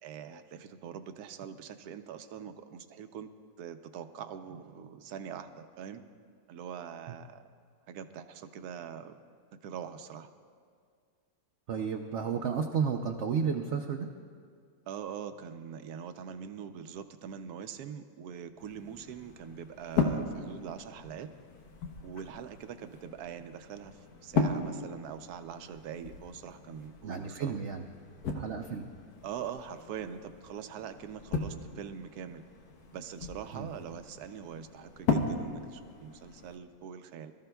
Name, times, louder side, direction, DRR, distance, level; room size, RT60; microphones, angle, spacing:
voice 1, 0.0-3.3 3.6-6.0 6.5-7.5 7.9-9.2 9.6-10.3 14.9-21.3 22.0-27.7 29.2-32.4 32.9-37.3, right 8 dB, 80° right, 9 dB, 1.2 m, -43 dB
voice 2, 11.7-14.1 27.0-27.9 28.3-28.8 33.5-33.7, right 6 dB, 60° right, 3 dB, 0.8 m, -32 dB
sound 1, 18.6-36.6, left 4 dB, 85° left, 1.5 m, -37 dB
22.5 x 13.5 x 2.3 m, 2.1 s
omnidirectional pair, 1.6 m